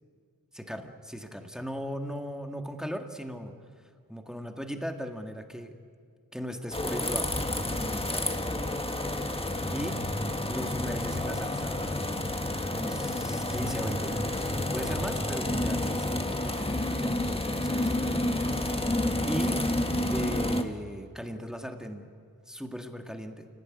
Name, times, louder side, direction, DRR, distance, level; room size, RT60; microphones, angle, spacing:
voice 1, 0.6-5.8 6.3-7.4 7.7-8.3 9.7-10.0 10.5-11.8 12.7-18.0 19.3-19.6 20.1-22.1 22.5-23.5, equal, ahead, 4 dB, 2.1 m, -38 dB
sound 1, 6.7-20.6, left 1 dB, 15° left, 1.8 m, -30 dB
28.5 x 18.5 x 9.8 m, 2.1 s
wide cardioid pair, 85°, 36 cm